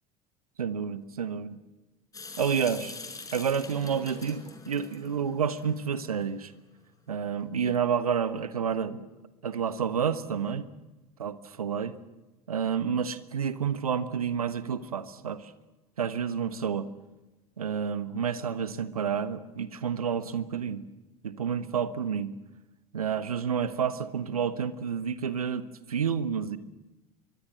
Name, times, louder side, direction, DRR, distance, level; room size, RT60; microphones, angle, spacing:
voice 1, 0.6-1.6 2.4-2.9 3.3-6.5 7.1-9.1 9.4-10.7 11.2-11.9 12.5-15.5 16.0-16.9 17.6-20.8 21.2-22.3 22.9-26.6, right 7 dB, 80° right, 13 dB, 1.2 m, -29 dB
Water tap faucet / Sink (filling or washing) / Drip, 2.1-6.2, left 3 dB, 20° left, 5.8 m, -44 dB
25.0 x 23.0 x 7.3 m, 1.1 s
figure-of-eight pair, 70°, 19 cm